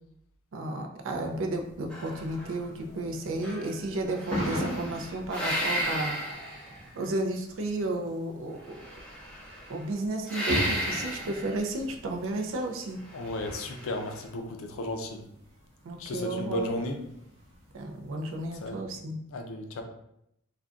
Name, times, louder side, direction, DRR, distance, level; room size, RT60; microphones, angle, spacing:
voice 1, 0.5-6.3 6.9-8.9 9.7-13.0 15.8-16.7 17.7-19.2, right 2 dB, 60° right, 3 dB, 0.4 m, -33 dB
sound 1, 1.0-18.7, equal, 30° right, 0.9 m, -41 dB
sound 2, 1.9-3.1 3.4-7.1 8.7-9.8 10.3-11.6 13.1-14.2, equal, 5° left, 0.6 m, -34 dB
voice 2, 13.1-15.2 16.0-17.0 18.6-18.8 19.3-19.8, left 1 dB, 65° left, 5 dB, 0.4 m, -34 dB
2.4 x 2.2 x 3.6 m, 0.78 s
head